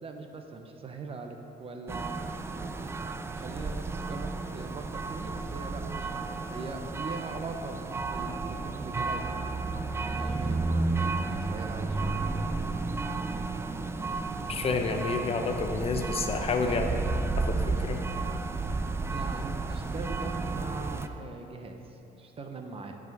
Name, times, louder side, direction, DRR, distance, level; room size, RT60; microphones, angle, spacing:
voice 1, 0.0-2.1 3.3-9.6 10.0-10.9 11.3-12.2 18.7-23.0, right 3 dB, 35° right, 5 dB, 0.8 m, -41 dB
sound 1, 1.9-21.1, right 3 dB, 15° right, 0.3 m, -32 dB
voice 2, 14.5-17.0 17.4-18.0, left 4 dB, 35° left, 4 dB, 0.7 m, -29 dB
10.0 x 4.9 x 5.4 m, 3.0 s
cardioid pair, 110°, 17 cm